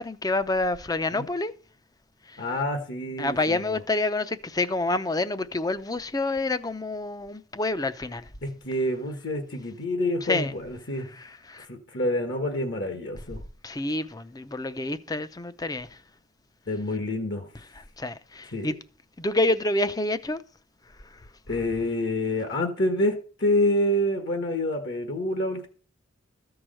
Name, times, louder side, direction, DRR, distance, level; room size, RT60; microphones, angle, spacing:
voice 1, 0.0-1.5 3.2-8.2 10.3-10.5 11.5-11.6 13.6-15.9 18.0-18.8 19.2-20.4, left 2 dB, 20° left, 0.6 m, -27 dB
voice 2, 2.4-3.8 8.4-11.1 11.6-13.4 16.7-17.5 18.5-18.7 21.5-25.7, left 1 dB, 55° left, 1.3 m, -27 dB
13.5 x 4.7 x 7.6 m
head